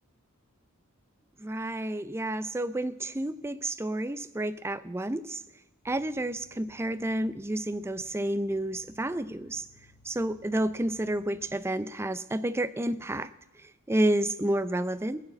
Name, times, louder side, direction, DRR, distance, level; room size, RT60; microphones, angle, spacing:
voice 1, 1.4-5.4 5.8-9.7 10.0-13.3 13.6-15.3, right 1 dB, 10° right, 13 dB, 0.4 m, -30 dB
sound 1, 5.8-11.6, left 1 dB, 15° left, 1.4 m, -60 dB
18.0 x 7.3 x 7.5 m, 0.91 s
head